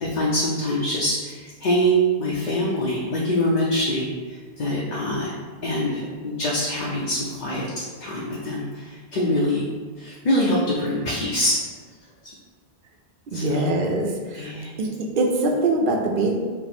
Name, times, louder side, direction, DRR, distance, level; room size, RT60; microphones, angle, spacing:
voice 1, 0.0-4.1 4.6-5.3 5.6-9.6 10.0-11.6 13.3-13.6 14.3-14.7, equal, 55° left, -4 dB, 0.6 m, -24 dB
voice 2, 13.3-14.5 14.8-14.9 15.2-16.4, right 2 dB, 60° right, 1 dB, 0.7 m, -22 dB
4.4 x 2.0 x 4.1 m, 1.5 s
omnidirectional pair, 1.0 m